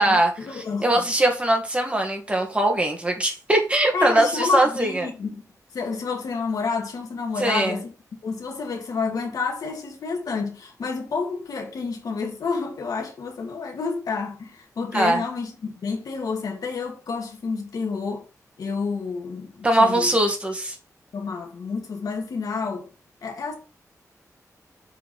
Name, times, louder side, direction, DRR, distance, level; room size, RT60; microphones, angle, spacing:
voice 1, 0.0-1.1 3.9-5.4 5.7-7.9 8.2-18.3 18.6-20.2 21.1-22.9 23.2-23.5, left 4 dB, 80° left, 2.1 m, -29 dB
voice 2, 0.8-5.1 7.4-7.8 14.9-15.2 19.6-20.8, right 1 dB, 20° right, 2.2 m, -21 dB
7.6 x 4.7 x 4.2 m
cardioid pair, 85°, 6 cm